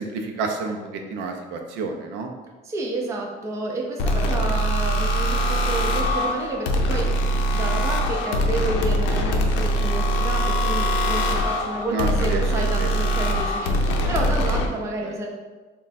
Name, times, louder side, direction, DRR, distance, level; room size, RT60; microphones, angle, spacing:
voice 1, 0.0-2.3 11.9-12.9 15.0-15.2, right 3 dB, 75° right, 3 dB, 0.5 m, -29 dB
voice 2, 2.6-15.3, right 2 dB, 15° right, 0 dB, 0.4 m, -30 dB
sound 1, 4.0-14.7, equal, 85° left, 0.5 m, -22 dB
3.6 x 2.3 x 4.0 m, 1.3 s
cardioid pair, 170°, 18 cm